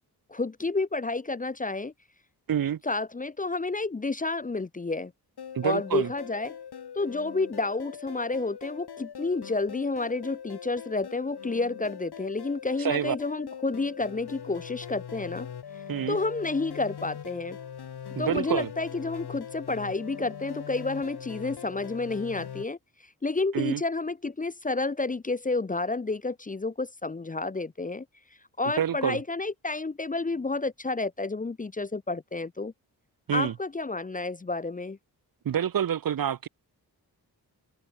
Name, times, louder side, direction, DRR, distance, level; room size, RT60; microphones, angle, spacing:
voice 1, 0.3-1.9 2.8-5.1 5.6-6.6 7.0-15.5 16.1-17.6 18.2-22.8 23.2-28.1 28.6-32.7 33.3-35.0, left 3 dB, 20° left, 0.6 m, -30 dB
voice 2, 2.5-2.8 5.5-6.1 12.8-13.2 15.9-16.2 18.1-18.7 23.5-23.8 28.8-29.2 33.3-33.5 35.4-36.5, right 9 dB, 60° right, 0.8 m, -27 dB
sound 1, 5.4-22.7, left 8 dB, 75° left, 2.8 m, -41 dB
open air
wide cardioid pair, 165°, 40 cm